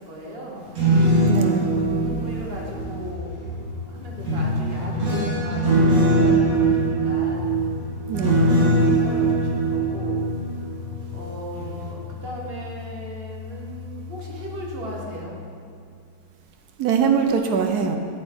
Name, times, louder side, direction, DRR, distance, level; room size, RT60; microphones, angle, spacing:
voice 1, 0.1-0.6 2.0-3.4 3.9-5.6 5.9-7.5 8.5-10.2 11.1-15.4, equal, 35° right, -2 dB, 1.5 m, -37 dB
sound 1, 0.6-3.5 4.2-11.2 11.5-11.9, right 2 dB, 50° right, 2.5 m, -21 dB
voice 2, 1.3-1.7 8.1-8.5 16.8-18.0, right 6 dB, 70° right, 5 dB, 1.1 m, -22 dB
sound 2, 1.5-15.1, left 5 dB, 70° left, 1.8 m, -37 dB
9.1 x 7.6 x 4.4 m, 2.5 s
omnidirectional pair, 2.0 m